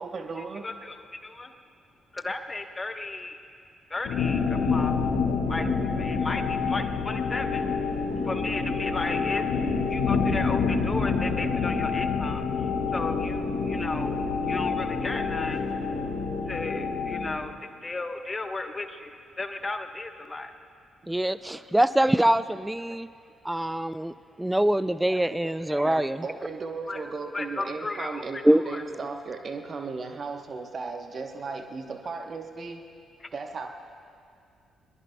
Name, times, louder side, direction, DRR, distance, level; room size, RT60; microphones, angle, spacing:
voice 1, 0.0-0.7 25.4-32.9 33.3-33.7, right 4 dB, 40° right, 5 dB, 1.0 m, -36 dB
voice 2, 0.6-1.5 2.1-3.4 3.9-4.9 5.5-7.6 8.2-9.4 9.7-15.6 16.5-17.5 17.8-20.5 26.9-27.0 27.3-28.4 28.7-28.8, left 2 dB, 25° left, 7 dB, 1.1 m, -34 dB
sound 1, 4.1-17.4, left 5 dB, 60° left, 1.5 m, -27 dB
voice 3, 21.1-23.1 23.4-26.2 28.4-28.6, right 1 dB, 10° right, 15 dB, 0.4 m, -24 dB
22.5 x 22.0 x 2.3 m, 2.3 s
figure-of-eight pair, 40°, 0 cm